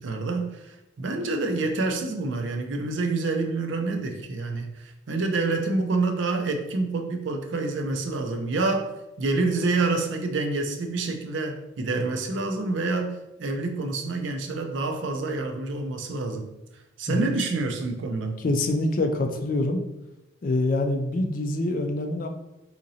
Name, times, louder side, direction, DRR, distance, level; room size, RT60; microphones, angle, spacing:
voice 1, 0.0-8.9 9.2-16.5 17.0-18.4, right 3 dB, 75° right, 0.5 m, -27 dB
voice 2, 18.4-19.8 20.4-22.3, left 2 dB, 45° left, 0.3 m, -25 dB
3.8 x 2.9 x 2.7 m
head